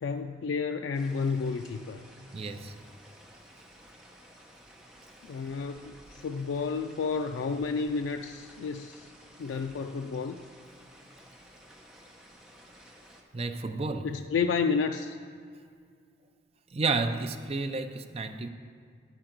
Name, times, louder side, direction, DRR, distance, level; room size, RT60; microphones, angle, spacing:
voice 1, 0.0-2.0 5.2-9.1 9.4-10.4 14.0-15.2, left 5 dB, 85° left, 6 dB, 0.3 m, -31 dB
sound 1, 0.9-13.2, equal, 5° right, 0.8 m, -54 dB
voice 2, 2.3-2.7 13.3-14.1 16.7-18.5, right 3 dB, 35° right, 7 dB, 0.5 m, -31 dB
9.8 x 5.0 x 5.9 m, 2.2 s
head